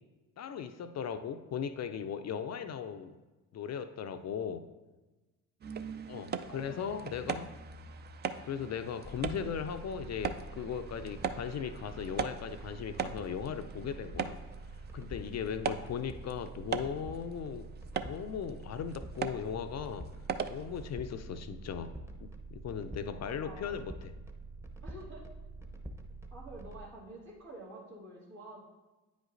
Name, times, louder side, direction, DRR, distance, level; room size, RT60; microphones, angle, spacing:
voice 1, 0.4-3.1 3.5-4.7 6.1-7.5 8.5-14.4 14.9-17.7 18.0-20.1 20.5-24.1, left 7 dB, 40° left, 9 dB, 0.4 m, -38 dB
sound 1, 5.6-21.0, right 6 dB, 25° right, 0.3 m, -41 dB
voice 2, 6.5-7.1 23.1-23.8 24.8-25.3 26.3-28.6, right 1 dB, 80° right, -5 dB, 2.1 m, -49 dB
sound 2, 9.0-26.8, right 2 dB, 5° right, 0.8 m, -46 dB
9.2 x 5.1 x 2.5 m, 1.2 s
hypercardioid pair, 55°, 45 cm